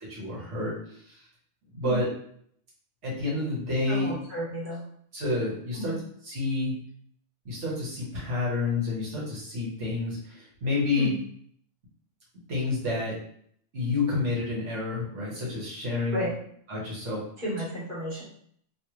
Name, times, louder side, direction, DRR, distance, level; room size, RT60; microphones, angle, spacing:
voice 1, 0.1-1.2 1.7-2.1 3.0-4.1 5.1-5.9 6.2-6.8 7.4-11.1 12.5-13.2 13.7-16.3 16.7-17.2, left 3 dB, 70° right, -5 dB, 1.6 m, -29 dB
voice 2, 3.9-4.8 5.7-5.9 11.0-11.1 16.1-16.3 17.4-18.2, equal, 40° right, -8 dB, 1.7 m, -32 dB
3.2 x 2.9 x 3.0 m, 0.64 s
omnidirectional pair, 1.3 m